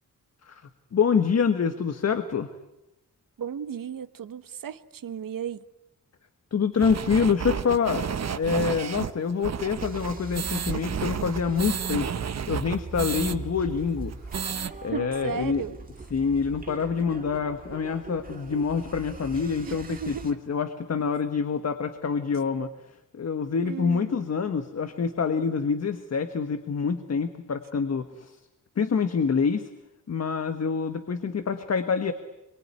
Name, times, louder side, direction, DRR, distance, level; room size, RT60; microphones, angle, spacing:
voice 1, 0.9-2.5 6.5-8.0 8.4-12.1 12.5-14.1 14.8-15.6 16.1-22.7 23.1-28.4 28.8-29.7 30.1-32.1, left 6 dB, 50° left, 8 dB, 1.4 m, -26 dB
voice 2, 3.4-5.6 14.9-15.7 19.6-20.3 23.6-24.1, right 8 dB, 80° right, 11 dB, 1.2 m, -34 dB
sound 1, 6.8-13.4 13.7-13.8 14.1-14.7, right 7 dB, 50° right, 1.0 m, -31 dB
sound 2, 9.8-20.3, right 3 dB, 25° right, 2.3 m, -41 dB
26.5 x 23.5 x 9.7 m, 0.93 s
wide cardioid pair, 170°, 33 cm